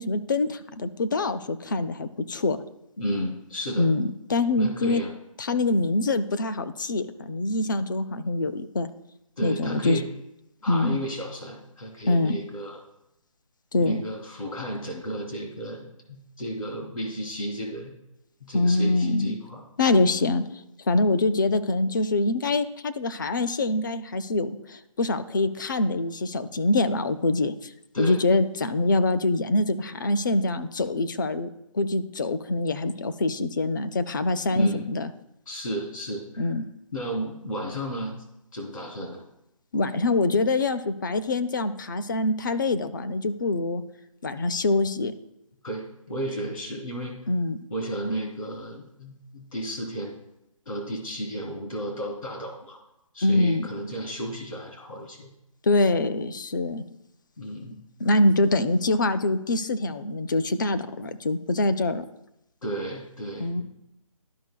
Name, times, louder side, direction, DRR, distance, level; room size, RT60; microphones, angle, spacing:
voice 1, 0.0-2.6 3.8-5.0 5.4-8.9 9.4-10.0 10.7-11.0 12.1-12.4 13.7-14.0 18.5-19.4 19.8-27.7 28.0-31.5 31.7-35.1 36.4-36.6 39.7-43.8 44.2-45.2 47.3-47.6 53.2-53.7 55.6-56.8 58.0-62.1 63.4-63.6, left 2 dB, 35° left, 11 dB, 0.5 m, -24 dB
voice 2, 3.0-3.9 4.6-5.1 9.4-10.0 10.6-12.8 13.8-17.9 18.4-19.6 27.9-28.2 34.5-34.9 35.5-36.5 36.9-38.1 38.5-39.2 45.6-47.3 47.7-50.2 50.6-52.8 53.1-55.3 57.4-57.8 62.6-63.6, equal, 75° left, -2 dB, 3.0 m, -33 dB
13.5 x 5.4 x 2.2 m, 0.85 s
hypercardioid pair, 165°, 18 cm